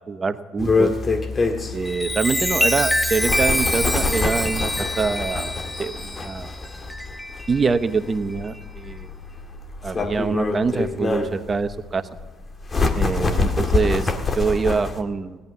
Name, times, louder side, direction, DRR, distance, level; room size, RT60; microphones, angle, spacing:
voice 1, 0.1-0.9 1.7-4.7 5.0-5.5 5.8-6.5 7.5-9.1 9.8-12.1 12.9-15.4, right 4 dB, 35° right, 12 dB, 0.9 m, -25 dB
sound 1, 0.6-15.0, left 3 dB, 30° left, 1.8 m, -26 dB
Chime, 1.7-7.7 8.3-8.6, left 1 dB, 5° left, 0.7 m, -26 dB
17.0 x 11.0 x 6.7 m, 1.4 s
hypercardioid pair, 65°, 0 cm